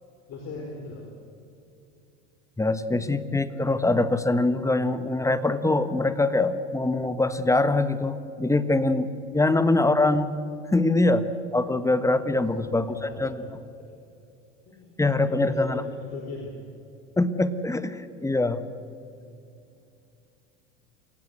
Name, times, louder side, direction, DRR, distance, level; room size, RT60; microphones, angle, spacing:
voice 1, 0.3-1.1 9.4-9.5 12.5-13.5 13.8-13.9 14.7-15.0 15.2-16.6, left 3 dB, 40° left, 1 dB, 4.6 m, -40 dB
voice 2, 2.6-10.4 10.7-11.3 11.5-13.3 15.0-15.8 17.2-18.6, left 2 dB, 10° left, 12 dB, 1.4 m, -23 dB
28.0 x 16.5 x 8.1 m, 2.6 s
hypercardioid pair, 85°, 38 cm